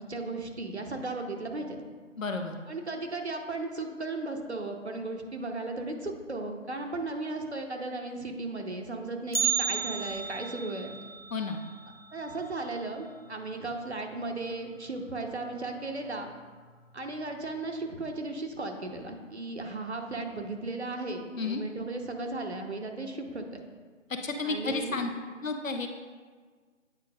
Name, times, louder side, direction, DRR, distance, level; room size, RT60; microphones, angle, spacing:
voice 1, 0.0-1.8 2.7-11.0 12.1-16.3 16.9-23.6 24.4-25.1, right 2 dB, 55° right, 3 dB, 0.9 m, -36 dB
voice 2, 2.2-2.6 11.3-11.6 21.4-21.6 24.2-25.1 25.4-25.9, left 3 dB, 80° left, 5 dB, 0.9 m, -31 dB
Bell, 9.3-13.4 13.7-13.8 14.3-14.4 15.2-15.3 16.0-16.3 16.7-16.8, right 6 dB, 50° left, 0.7 m, -34 dB
9.0 x 4.6 x 2.4 m, 1.5 s
figure-of-eight pair, 175°, 39 cm